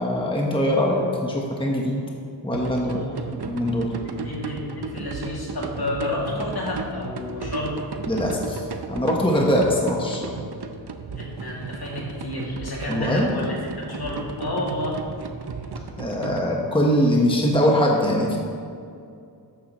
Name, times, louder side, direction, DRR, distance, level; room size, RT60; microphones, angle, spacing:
voice 1, 0.0-2.0 2.4-3.0 3.5-3.8 8.1-8.6 8.9-10.3 12.9-13.3 16.0-18.4, equal, 10° left, -2 dB, 1.2 m, -22 dB
sound 1, 2.5-16.4, right 4 dB, 70° right, 0.8 m, -35 dB
voice 2, 2.8-3.3 3.9-7.8 11.2-15.0, left 1 dB, 65° left, -4 dB, 2.5 m, -30 dB
13.0 x 9.7 x 3.1 m, 2.4 s
wide cardioid pair, 95°, 41 cm